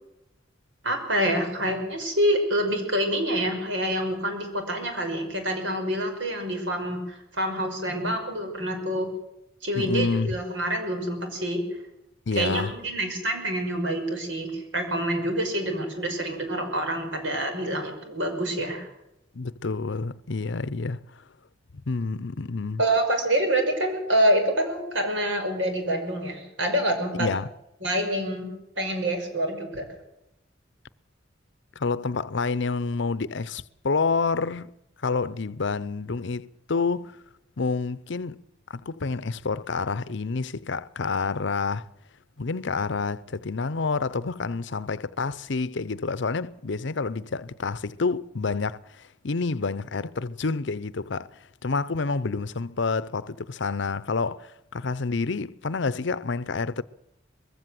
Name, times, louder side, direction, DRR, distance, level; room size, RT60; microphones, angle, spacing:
voice 1, 0.8-9.1 9.6-11.6 12.3-18.9 22.8-27.3 27.8-28.5 28.8-29.8, right 1 dB, 70° right, 5.6 m, -26 dB
voice 2, 9.8-10.4 12.3-12.7 19.3-21.2 21.9-22.8 27.1-27.5 31.8-34.7 35.0-37.2 37.6-38.4 38.7-41.9 42.4-56.8, left 4 dB, 65° left, 0.7 m, -28 dB
21.0 x 16.0 x 7.7 m
head